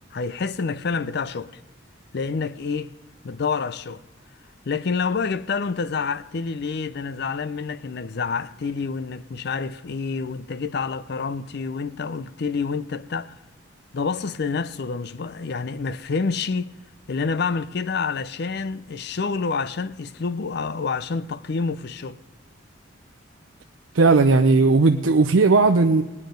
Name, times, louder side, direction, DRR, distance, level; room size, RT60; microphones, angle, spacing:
voice 1, 0.1-1.5 2.1-2.9 3.2-4.0 4.7-13.4 13.9-16.7 17.1-22.2, left 4 dB, 55° left, 0.5 m, -28 dB
voice 2, 23.9-26.0, right 3 dB, 75° right, 0.6 m, -16 dB
20.0 x 9.6 x 5.2 m
head